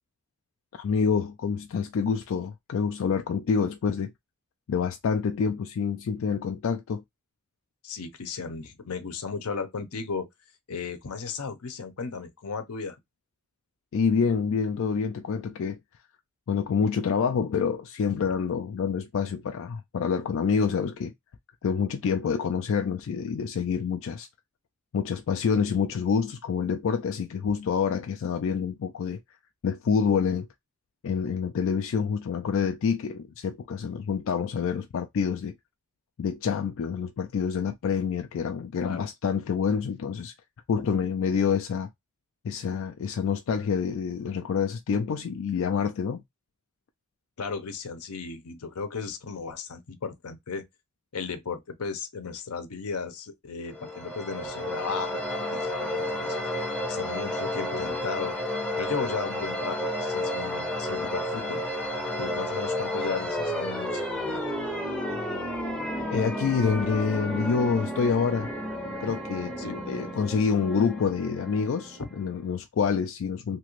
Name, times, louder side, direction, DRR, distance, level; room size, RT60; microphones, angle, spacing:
voice 1, 0.8-4.1 4.7-7.0 13.9-15.8 16.5-21.1 21.6-24.3 24.9-29.2 29.6-30.5 31.0-35.6 36.2-40.3 40.7-41.9 42.4-46.2 66.1-68.5 69.0-73.6, left 6 dB, 60° left, 0.3 m, -27 dB
voice 2, 7.8-10.3 10.7-13.0 38.8-39.1 40.8-40.9 47.4-50.7 51.1-55.2 55.5-56.4 56.9-58.4 58.7-61.6 62.2-64.4 69.6-69.7 72.0-72.1, left 4 dB, 80° left, 0.7 m, -35 dB
sound 1, 53.7-72.3, left 1 dB, 5° left, 0.6 m, -32 dB
2.9 x 2.4 x 3.0 m
head